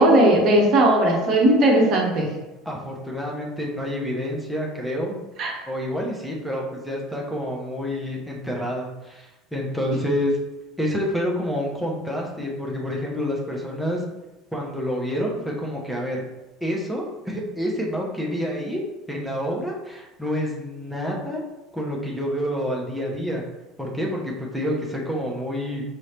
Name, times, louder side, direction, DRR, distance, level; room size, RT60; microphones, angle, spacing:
voice 1, 0.0-2.3 5.4-5.5, right 1 dB, 50° right, -1 dB, 0.8 m, -17 dB
voice 2, 2.6-5.2 5.7-10.4 10.8-14.0 14.5-16.2 16.6-18.8 19.1-21.4 21.7-23.4 23.8-25.8, equal, ahead, -2 dB, 0.9 m, -28 dB
5.0 x 3.1 x 2.9 m, 1.0 s
figure-of-eight pair, 65°, 0 cm